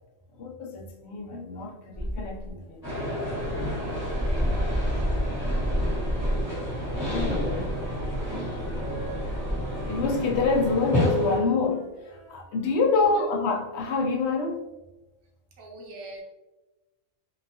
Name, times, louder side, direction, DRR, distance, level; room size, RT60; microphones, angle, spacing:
voice 1, 0.4-2.9 6.9-7.8 9.9-14.7, left 4 dB, 65° left, 1 dB, 0.7 m, -27 dB
Dog, 1.9-2.5 3.1-3.2 3.4-10.7, equal, 10° right, 0.5 m, -30 dB
sound 1, 2.8-11.4, left 1 dB, 15° left, 1.2 m, -31 dB
Wind instrument woodwind instrument, 6.5-12.8, right 2 dB, 85° right, 1.2 m, -47 dB
voice 2, 12.9-13.3 15.6-16.2, right 1 dB, 65° right, -1 dB, 0.9 m, -42 dB
2.7 x 2.2 x 2.7 m, 1.1 s
omnidirectional pair, 1.4 m